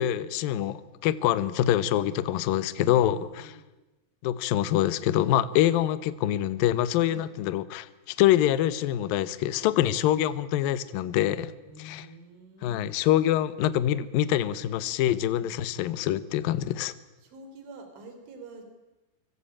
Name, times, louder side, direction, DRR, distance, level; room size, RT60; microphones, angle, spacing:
voice 1, 0.0-3.5 4.2-11.5 11.8-12.1 12.6-16.9, left 12 dB, 70° left, 15 dB, 2.3 m, -25 dB
voice 2, 2.8-3.6 5.5-5.7 7.1-7.3 11.7-12.9 15.4-15.6 17.2-18.6, right 1 dB, 85° right, 6 dB, 6.1 m, -47 dB
26.0 x 24.5 x 8.7 m, 1.1 s
omnidirectional pair, 5.3 m